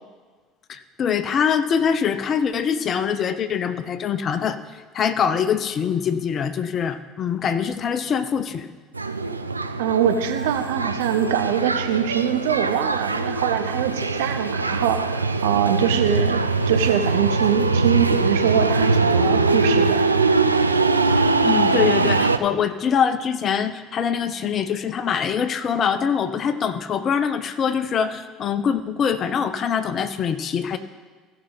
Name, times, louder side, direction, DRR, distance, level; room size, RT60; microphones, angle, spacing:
voice 1, 0.7-4.6 4.9-8.7 21.1-30.8, left 7 dB, 40° left, 11 dB, 0.7 m, -23 dB
sound 1, 8.9-22.4, right 3 dB, 90° right, 0.4 m, -22 dB
voice 2, 9.8-20.0, right 9 dB, 70° right, 7 dB, 0.8 m, -23 dB
16.5 x 5.7 x 4.0 m, 1.5 s
figure-of-eight pair, 65°, 0 cm